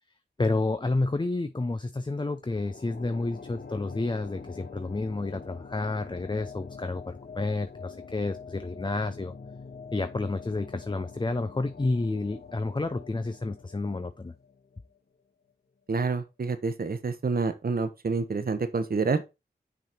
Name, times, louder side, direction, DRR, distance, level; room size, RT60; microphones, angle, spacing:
voice 1, 0.4-9.3 9.9-14.3, left 2 dB, 25° left, 0.6 m, -30 dB
sound 1, 2.4-15.0, left 5 dB, 60° left, 1.0 m, -45 dB
voice 2, 15.9-19.3, right 4 dB, 60° right, 0.9 m, -28 dB
6.1 x 4.1 x 4.3 m
cardioid pair, 40°, 18 cm